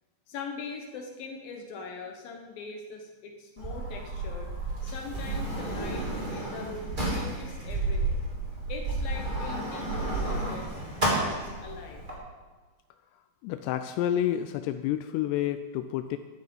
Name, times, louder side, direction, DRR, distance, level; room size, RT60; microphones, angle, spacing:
voice 1, 0.3-4.5 4.8-8.2 8.7-10.8 11.1-12.0, left 4 dB, 70° left, 2 dB, 2.6 m, -41 dB
Sliding door, 3.6-12.1, right 2 dB, 15° right, 2.2 m, -31 dB
voice 2, 13.4-16.2, left 11 dB, 85° left, 9 dB, 2.7 m, -29 dB
12.0 x 11.5 x 5.4 m, 1.4 s
omnidirectional pair, 4.9 m